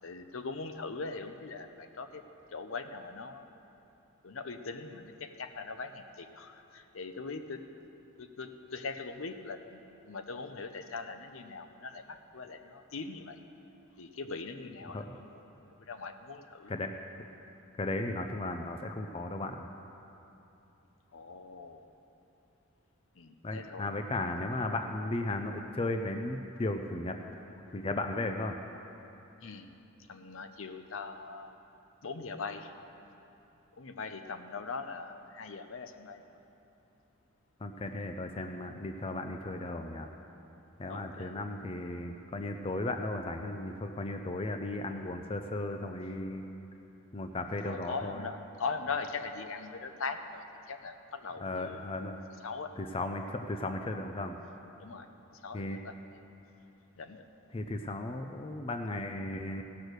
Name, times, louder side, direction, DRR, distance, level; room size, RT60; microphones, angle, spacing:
voice 1, 0.0-2.2 2.5-3.5 4.2-7.7 8.2-13.4 14.0-15.4 15.9-16.7 21.1-21.9 23.2-23.9 29.4-29.7 30.1-31.5 32.0-32.7 33.8-36.4 40.9-41.3 47.6-51.9 52.4-52.8 54.8-56.2 57.0-57.2, left 4 dB, 70° left, 8 dB, 0.7 m, -41 dB
voice 2, 17.8-19.6 23.4-27.2 27.7-28.5 37.6-40.1 40.8-46.4 47.1-48.3 51.4-52.2 52.8-54.4 55.5-55.8 57.5-59.6, left 2 dB, 25° left, 5 dB, 0.4 m, -35 dB
16.5 x 6.3 x 6.5 m, 2.9 s
head